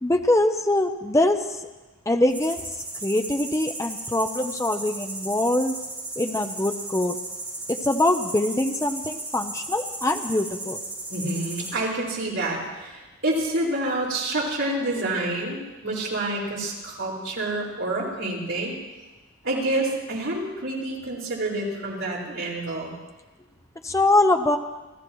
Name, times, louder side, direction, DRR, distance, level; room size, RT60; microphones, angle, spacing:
voice 1, 0.0-1.6 2.1-2.6 3.0-5.7 6.2-7.2 7.7-10.8 23.8-24.6, left 1 dB, 15° left, 6 dB, 0.6 m, -23 dB
sound 1, 2.3-11.7, right 2 dB, 10° right, 5.8 m, -35 dB
voice 2, 11.1-18.8 19.4-22.9, right 2 dB, 65° right, -5 dB, 4.9 m, -28 dB
27.0 x 15.0 x 3.1 m, 1.2 s
head